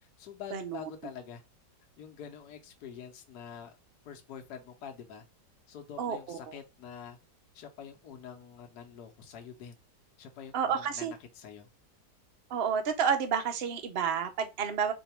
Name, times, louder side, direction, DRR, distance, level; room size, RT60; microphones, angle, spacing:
voice 1, 0.2-1.4 2.0-3.7 4.0-5.2 5.7-7.2 7.5-9.8 10.2-11.7, left 8 dB, 65° left, 1.2 m, -46 dB
voice 2, 6.0-6.4 10.5-11.1 12.5-14.9, right 7 dB, 80° right, 0.5 m, -30 dB
4.4 x 2.8 x 4.3 m
omnidirectional pair, 2.0 m